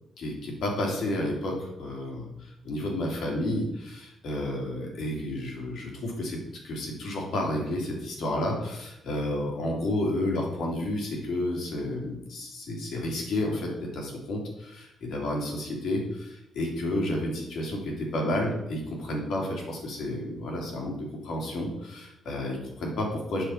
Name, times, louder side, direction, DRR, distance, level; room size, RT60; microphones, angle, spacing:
voice 1, 0.2-6.4 6.6-23.4, left 1 dB, 70° left, 0 dB, 3.2 m, -31 dB
7.9 x 6.1 x 5.8 m, 0.89 s
cardioid pair, 90°, 0 cm